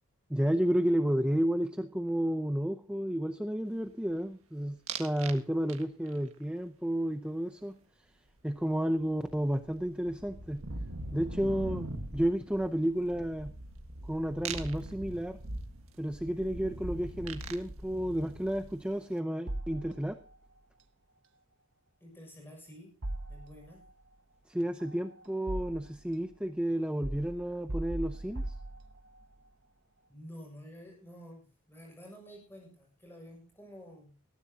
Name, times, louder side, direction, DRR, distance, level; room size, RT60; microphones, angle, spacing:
voice 1, 0.3-7.7 8.4-10.6 11.1-11.9 12.1-13.5 14.0-15.4 16.0-20.2 24.5-28.6, equal, 5° right, 7 dB, 0.6 m, -31 dB
sound 1, 4.9-5.4 5.7-6.2 8.6-8.7 8.9-19.0, right 2 dB, 80° right, 1.7 m, -41 dB
sound 2, 19.5-20.4 23.0-23.9 24.8-26.1 27.0-29.3, right 1 dB, 60° right, 1.1 m, -39 dB
voice 2, 22.0-22.9 23.3-23.8 30.1-34.1, equal, 10° left, 0 dB, 7.1 m, -50 dB
19.5 x 14.0 x 2.9 m, 0.34 s
head